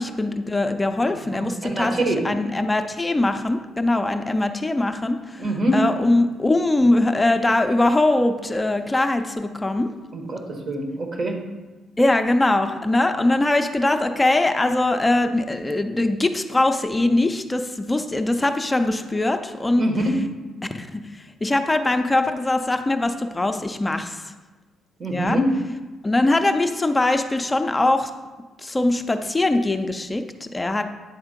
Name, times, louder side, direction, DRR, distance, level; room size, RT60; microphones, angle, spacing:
voice 1, 0.0-5.4 5.7-9.9 12.0-19.9 20.7-24.2 25.1-25.4 26.0-28.1 28.6-30.8, left 2 dB, 15° left, 7 dB, 0.5 m, -22 dB
voice 2, 1.3-2.2 5.4-5.8 10.1-11.4 19.7-20.1 25.0-25.5, right 1 dB, 50° right, 2 dB, 1.4 m, -24 dB
8.8 x 3.6 x 5.2 m, 1.2 s
cardioid pair, 90°, 0 cm